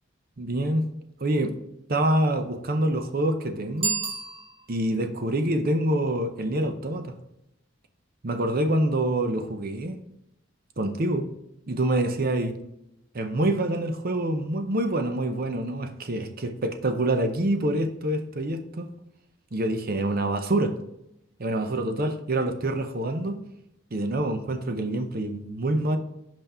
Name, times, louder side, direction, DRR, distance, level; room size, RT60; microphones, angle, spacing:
voice 1, 0.4-0.8 1.2-1.6 1.9-4.0 4.7-7.1 8.2-10.0 10.8-11.3 11.7-12.6 13.1-18.9 19.5-20.8 21.4-23.4 23.9-26.0, right 1 dB, 50° right, 0.7 m, -26 dB
Bicycle bell, 3.7-5.0, right 3 dB, 30° right, 1.4 m, -31 dB
5.7 x 5.3 x 4.2 m
head